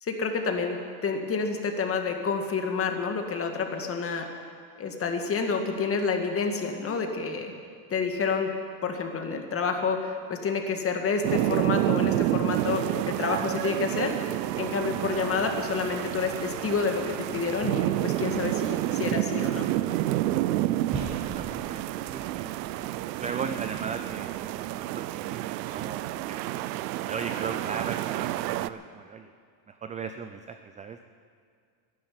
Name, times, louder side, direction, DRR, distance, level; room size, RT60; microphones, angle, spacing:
voice 1, 0.0-4.3 4.8-7.5 7.9-8.5 8.8-14.2 14.6-19.7, left 5 dB, 25° left, 4 dB, 2.0 m, -29 dB
sound 1, 11.2-28.7, right 15 dB, 85° right, 0.7 m, -29 dB
sound 2, 14.4-24.7, right 3 dB, 40° right, 4.9 m, -46 dB
voice 2, 20.9-26.4 27.0-29.3 29.7-31.0, right 6 dB, 15° right, 8 dB, 0.4 m, -38 dB
12.5 x 11.0 x 9.6 m, 2.2 s
supercardioid pair, 120°, 49 cm